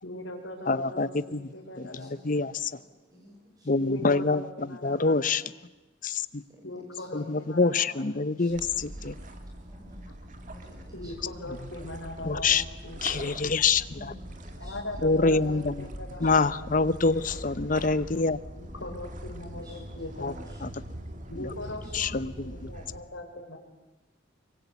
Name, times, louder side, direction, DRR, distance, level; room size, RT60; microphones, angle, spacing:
voice 1, 0.0-2.5 3.8-5.4 6.6-8.0 10.9-13.3 14.6-16.7 17.0-17.4 18.6-20.5 21.3-23.6, left 1 dB, 85° left, 1 dB, 5.5 m, -41 dB
voice 2, 0.7-1.5 1.8-1.9 2.2-2.7 3.7-4.4 4.8-5.4 6.0-6.4 7.1-9.1 12.2-12.6 13.0-14.1 15.0-15.9 16.2-18.4 20.2-20.3 20.6-20.7 21.9-22.6, left 4 dB, 45° left, 15 dB, 0.8 m, -26 dB
voice 3, 2.8-3.7 6.5-6.6 6.9-7.0 7.3-7.9 8.4-9.2 9.7-10.1 10.5-11.1 13.9-14.3 14.6-14.8 16.2-16.4 19.5-19.8 20.3-20.6 20.8-21.0 21.6-21.8, equal, 20° right, 0 dB, 6.9 m, -53 dB
sound 1, 8.5-23.0, right 1 dB, 40° right, 2.1 m, -42 dB
24.5 x 24.0 x 8.2 m, 1.1 s
head